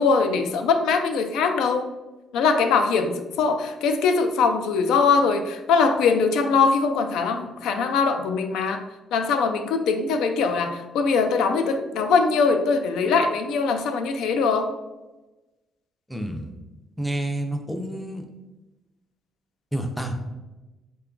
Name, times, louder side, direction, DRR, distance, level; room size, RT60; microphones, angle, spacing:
voice 1, 0.0-1.9 2.3-8.8 9.1-14.7, left 5 dB, 85° left, 6 dB, 0.3 m, -22 dB
voice 2, 16.1-16.5 17.0-18.2 19.7-20.1, right 1 dB, ahead, 4 dB, 0.4 m, -29 dB
3.7 x 2.2 x 3.7 m, 1.1 s
cardioid pair, 140°, 0 cm